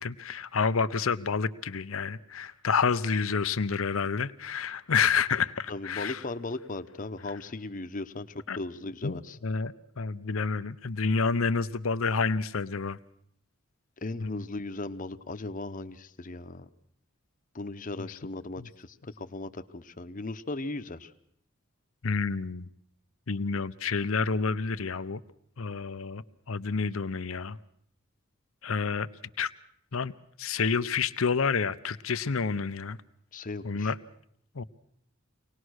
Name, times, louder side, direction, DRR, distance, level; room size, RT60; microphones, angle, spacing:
voice 1, 0.0-6.2 8.5-8.6 9.0-13.0 14.2-14.4 18.0-18.1 18.6-18.7 22.0-22.7 23.3-25.2 25.6-27.6 28.6-29.1 29.4-29.5 29.9-30.1 30.4-33.0 33.6-34.0 34.5-34.6, left 5 dB, 85° left, 13 dB, 0.8 m, -29 dB
voice 2, 5.7-9.4 14.0-16.7 17.5-21.1 33.3-33.9, left 2 dB, 40° left, 10 dB, 0.9 m, -37 dB
24.5 x 19.0 x 6.4 m, 0.68 s
head